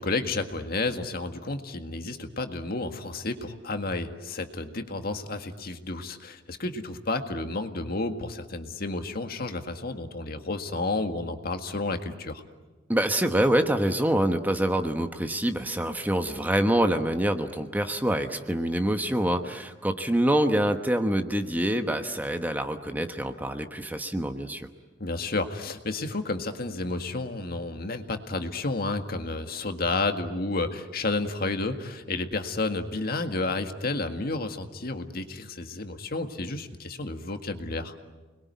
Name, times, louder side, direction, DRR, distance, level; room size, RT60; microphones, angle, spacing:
voice 1, 0.0-12.4 25.0-38.0, left 2 dB, 55° left, 6 dB, 1.9 m, -31 dB
voice 2, 12.9-24.7, right 1 dB, 10° right, 7 dB, 1.2 m, -26 dB
29.0 x 21.5 x 9.5 m, 1.3 s
head